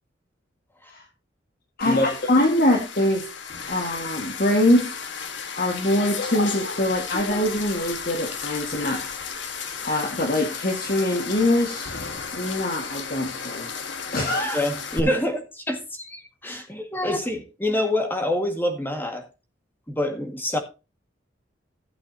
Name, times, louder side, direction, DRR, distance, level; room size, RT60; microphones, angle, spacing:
sound 1, 1.8-15.0, left 5 dB, 85° left, 1.5 m, -33 dB
voice 1, 1.8-3.2 3.7-4.9 5.6-9.1 9.8-11.9 12.3-13.7 14.1-14.4, left 1 dB, 50° left, 1.7 m, -23 dB
voice 2, 14.4-19.2 19.9-20.6, left 1 dB, 10° left, 1.8 m, -26 dB
15.0 x 8.0 x 2.8 m
head